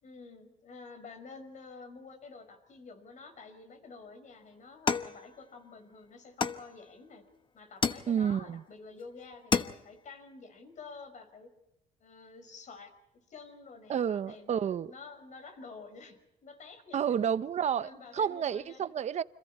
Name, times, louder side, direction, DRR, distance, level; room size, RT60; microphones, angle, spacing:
voice 1, 0.0-7.2 7.5-11.5 12.0-12.9 13.3-17.2 17.8-19.0, left 4 dB, 45° left, 8 dB, 5.5 m, -49 dB
sound 1, 4.9-5.8 6.4-7.1 7.8-8.5 9.0-9.1 9.3-10.1, left 5 dB, 30° left, 1.1 m, -32 dB
voice 2, 8.1-8.6 13.9-14.9 16.9-19.2, right 8 dB, 40° right, 13 dB, 0.9 m, -30 dB
29.5 x 26.5 x 4.3 m, 0.92 s
cardioid pair, 110°, 17 cm